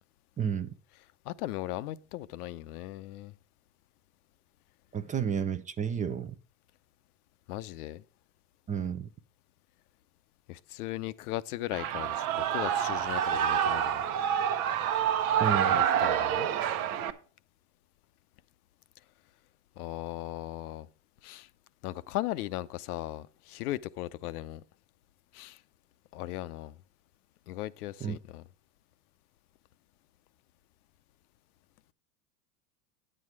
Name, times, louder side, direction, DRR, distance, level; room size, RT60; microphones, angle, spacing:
voice 1, 0.4-0.7 4.9-6.3 8.7-9.1 15.4-15.8 28.0-28.2, right 7 dB, 15° right, 0.5 m, -31 dB
voice 2, 1.3-3.3 7.5-8.0 10.5-14.0 15.5-16.5 19.8-20.9 21.2-21.5 21.8-24.6 25.3-25.6 26.1-26.7 27.5-28.4, left 15 dB, 70° left, 0.7 m, -37 dB
Shout / Cheering, 11.7-17.1, right 9 dB, 65° right, 1.1 m, -27 dB
9.8 x 7.7 x 4.7 m
hypercardioid pair, 110°, 46 cm